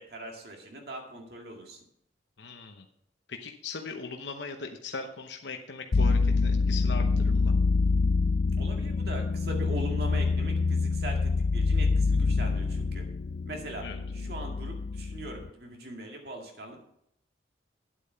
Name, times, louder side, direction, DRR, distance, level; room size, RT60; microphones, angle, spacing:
voice 1, 0.0-1.8 8.6-13.1 13.5-13.9 14.1-16.8, right 1 dB, 55° right, 1 dB, 2.1 m, -41 dB
voice 2, 2.4-2.8 3.3-7.5 13.8-14.0, left 4 dB, 70° left, 4 dB, 0.9 m, -39 dB
sound 1, 5.9-15.5, left 4 dB, 55° left, 0.4 m, -26 dB
9.4 x 8.4 x 5.6 m, 0.75 s
head